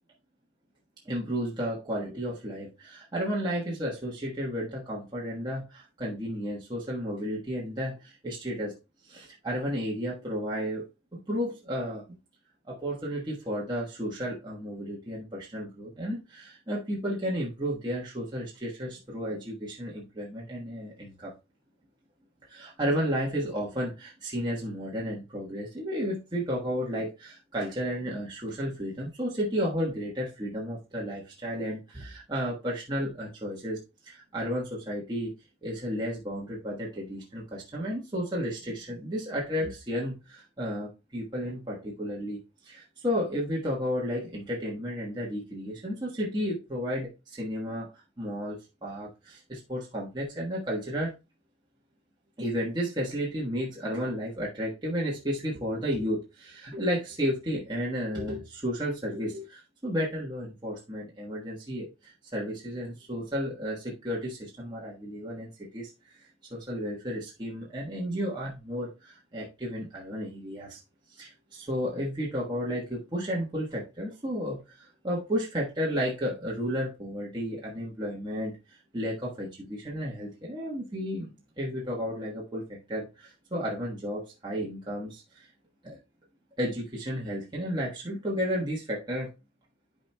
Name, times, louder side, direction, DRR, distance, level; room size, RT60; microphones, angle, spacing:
voice 1, 1.0-8.7 9.0-12.0 12.6-21.3 22.5-33.8 34.0-35.3 35.6-47.9 48.2-51.1 52.4-70.8 71.1-81.3 81.6-85.5 85.8-86.0 86.6-89.3, equal, 25° right, -5 dB, 1.3 m, -33 dB
12.5 x 4.4 x 2.2 m, 0.27 s
head